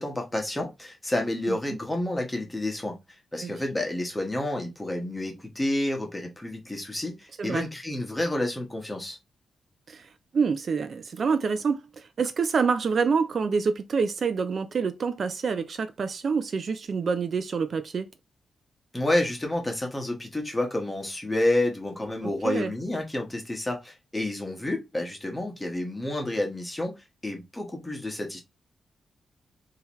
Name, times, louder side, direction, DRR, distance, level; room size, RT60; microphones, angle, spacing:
voice 1, 0.0-3.0 3.3-9.2 18.9-28.4, left 1 dB, 10° left, 1.1 m, -29 dB
voice 2, 9.9-18.1 22.2-22.7, right 5 dB, 50° right, 0.3 m, -27 dB
3.8 x 2.8 x 3.0 m
wide cardioid pair, 135°, 0 cm